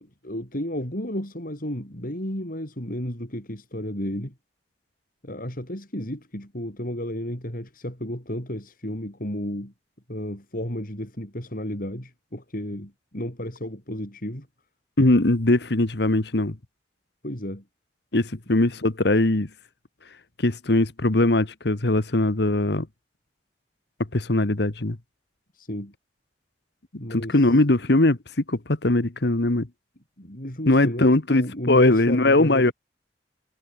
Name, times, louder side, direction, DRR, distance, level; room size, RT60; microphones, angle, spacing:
voice 1, 0.2-4.3 5.2-9.7 10.1-14.5 17.2-17.6 25.5-25.9 27.0-27.6 30.2-32.7, equal, 50° left, 7.7 m, -32 dB
voice 2, 15.0-16.6 18.1-19.5 20.4-22.9 24.1-25.0 27.1-28.2 28.5-29.7 30.7-31.4 31.7-32.7, left 2 dB, 70° left, 1.5 m, -20 dB
head